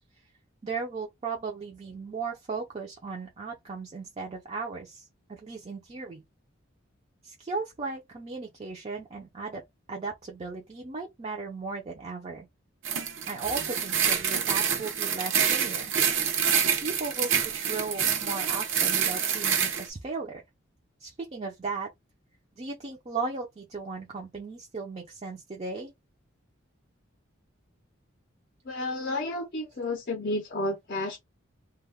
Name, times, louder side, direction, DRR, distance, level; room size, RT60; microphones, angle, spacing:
voice 1, 0.6-6.2 7.2-9.6 9.9-12.5 13.3-15.9 16.3-20.4 21.0-21.9 22.6-25.9, right 4 dB, 30° right, 0.4 m, -36 dB
sound 1, 12.8-19.9, right 7 dB, 70° right, 0.6 m, -27 dB
voice 2, 28.7-31.2, left 2 dB, 45° left, 0.5 m, -31 dB
2.2 x 2.0 x 3.3 m
head